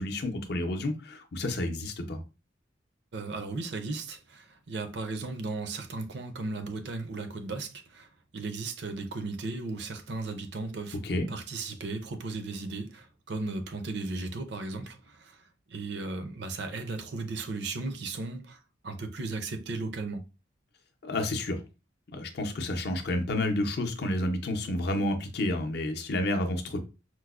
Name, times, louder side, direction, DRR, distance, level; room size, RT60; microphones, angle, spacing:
voice 1, 0.0-2.2 11.0-11.3 21.0-21.6 22.1-26.8, left 1 dB, 60° left, 0.5 m, -30 dB
voice 2, 3.1-11.0 11.3-20.3, right 3 dB, 65° right, 0.5 m, -36 dB
4.5 x 2.0 x 2.3 m
head